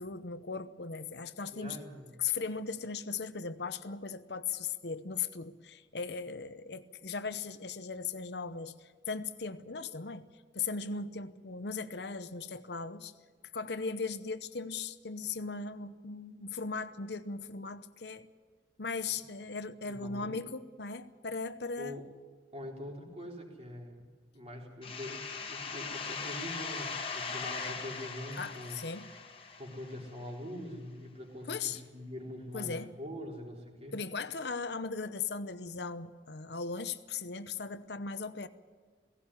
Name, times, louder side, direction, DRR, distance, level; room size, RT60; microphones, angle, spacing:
voice 1, 0.0-1.8 2.2-10.3 10.5-13.1 13.5-18.3 18.8-22.0 28.4-29.1 31.5-31.8 32.5-33.0 33.9-38.5, left 5 dB, 65° left, 12 dB, 0.9 m, -38 dB
voice 2, 1.5-2.1 19.9-20.3 21.8-22.1 22.5-24.1 24.3-28.8 29.6-33.9, left 1 dB, 35° right, 0 dB, 4.0 m, -43 dB
sound 1, 24.8-30.3, left 5 dB, 30° left, 1.7 m, -40 dB
17.0 x 17.0 x 9.9 m, 1.5 s
head